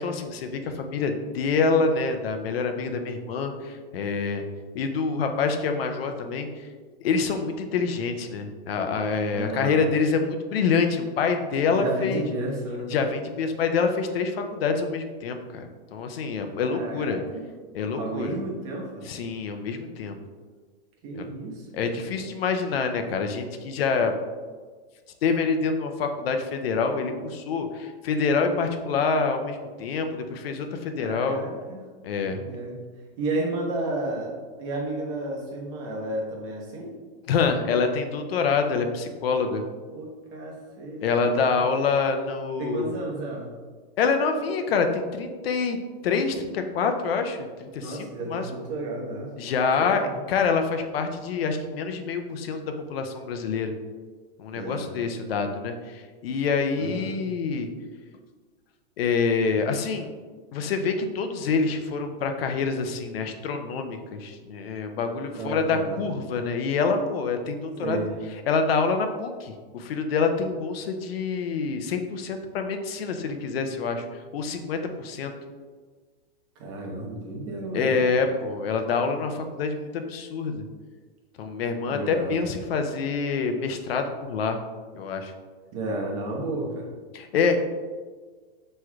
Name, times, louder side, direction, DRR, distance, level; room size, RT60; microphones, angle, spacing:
voice 1, 0.0-4.4 4.7-6.7 7.0-12.2 12.9-15.7 15.9-17.2 17.7-18.3 19.0-20.2 21.1-21.2 21.7-24.1 25.2-31.4 32.0-32.4 37.3-39.6 41.0-42.9 44.0-48.5 49.4-53.7 54.4-57.7 59.0-60.1 60.5-68.0 68.5-74.0 74.3-75.3 77.7-80.6 81.4-84.6 84.9-85.3 87.1-87.6, left 5 dB, 80° left, 6 dB, 0.6 m, -26 dB
voice 2, 9.3-9.8 11.7-12.9 16.6-17.4 18.0-19.0 21.0-22.0 31.0-31.8 32.2-32.8 33.2-34.3 34.6-36.9 39.9-41.6 42.6-43.5 47.8-49.3 49.8-50.2 54.5-55.1 56.7-57.3 65.3-66.0 67.8-68.1 76.6-78.0 81.9-82.3 85.7-86.9, right 2 dB, 35° right, -2 dB, 1.0 m, -32 dB
6.0 x 3.2 x 2.3 m, 1.5 s
supercardioid pair, 165°, 30 cm